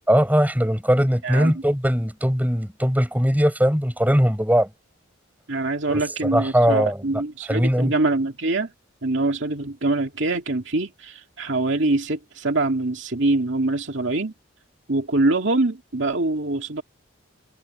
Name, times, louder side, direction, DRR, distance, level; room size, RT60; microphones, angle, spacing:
voice 1, 0.1-4.7 5.9-7.0 7.5-7.9, equal, 10° right, 6.9 m, -20 dB
voice 2, 5.5-8.7 9.0-14.3 14.9-16.8, right 2 dB, 60° right, 2.5 m, -24 dB
head